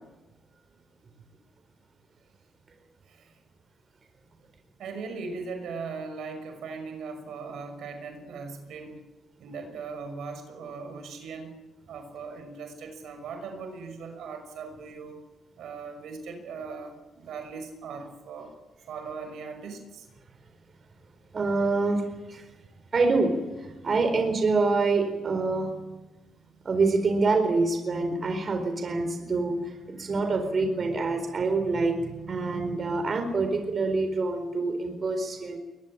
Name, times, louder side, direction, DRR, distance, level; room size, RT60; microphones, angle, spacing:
voice 1, 4.8-9.0 9.4-11.6 11.9-15.2 15.6-18.5 18.9-20.1, right 4 dB, 75° right, 7 dB, 5.9 m, -39 dB
voice 2, 21.3-22.4 22.9-25.8 26.6-35.6, right 3 dB, 40° right, 6 dB, 4.4 m, -26 dB
22.0 x 21.0 x 8.8 m, 1.1 s
cardioid pair, 90°, 0 cm